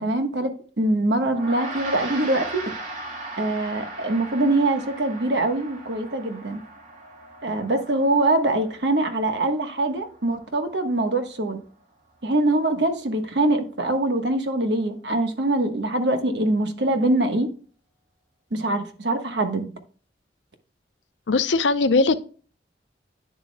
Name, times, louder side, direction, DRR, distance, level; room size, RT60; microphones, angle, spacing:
voice 1, 0.0-2.6 3.4-6.6 7.4-11.6 12.2-17.5 18.5-19.7, right 2 dB, 70° right, 1.3 m, -23 dB
Gong, 1.3-10.8, right 2 dB, 50° right, 2.3 m, -38 dB
voice 2, 21.3-22.2, left 3 dB, 85° left, 0.6 m, -19 dB
10.5 x 6.7 x 2.2 m
head